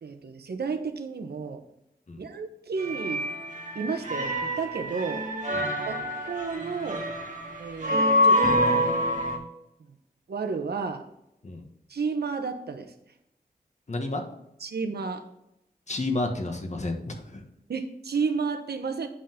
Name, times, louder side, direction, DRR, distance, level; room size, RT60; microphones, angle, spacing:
voice 1, 0.0-1.6 2.2-3.3 3.7-5.2 5.9-7.1 7.6-9.1 9.8-10.0 10.3-11.1 11.9-12.9 14.6-15.2 17.7-19.1, right 5 dB, 90° right, 7 dB, 1.0 m, -32 dB
sound 1, 2.8-9.4, equal, 50° right, 1.7 m, -26 dB
voice 2, 13.9-14.2 15.9-17.5, left 2 dB, 45° left, 4 dB, 1.5 m, -31 dB
8.4 x 5.6 x 3.7 m, 0.83 s
wide cardioid pair, 75°, 16 cm